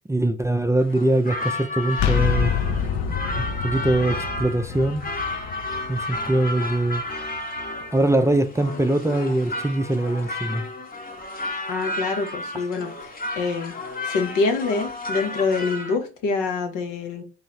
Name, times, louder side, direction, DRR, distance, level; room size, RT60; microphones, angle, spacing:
voice 1, 0.1-2.5 3.4-5.0 5.9-7.0 7.9-10.7 12.5-12.6, right 1 dB, 10° right, 0.4 m, -22 dB
sound 1, 0.8-16.0, left 2 dB, 25° left, 0.9 m, -32 dB
sound 2, 1.9-7.6, left 7 dB, 60° left, 0.6 m, -27 dB
voice 2, 11.7-13.1 13.4-13.7 14.0-17.2, left 4 dB, 80° left, 0.9 m, -25 dB
3.1 x 2.8 x 3.9 m
supercardioid pair, 55°, 32 cm